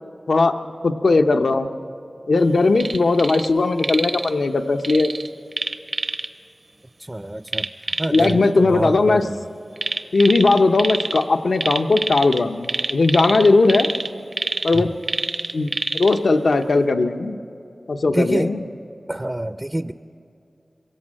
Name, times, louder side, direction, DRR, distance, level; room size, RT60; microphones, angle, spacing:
voice 1, 0.3-0.6 0.8-1.7 2.3-5.1 8.1-9.2 10.1-13.9 14.6-14.9 15.5-17.4 17.9-18.6, left 3 dB, 90° left, 7 dB, 0.7 m, -18 dB
asian frog, 2.7-3.5 3.8-4.3 4.8-6.3 7.5-8.3 9.8-11.2 11.5-16.2 16.6-16.7, right 2 dB, 60° right, 0.8 m, -26 dB
voice 2, 7.0-7.7 8.0-9.4 14.7-14.9 18.1-18.5 19.1-19.9, right 1 dB, 20° right, 10 dB, 0.4 m, -26 dB
22.5 x 17.0 x 7.5 m, 2.6 s
wide cardioid pair, 60°, 0 cm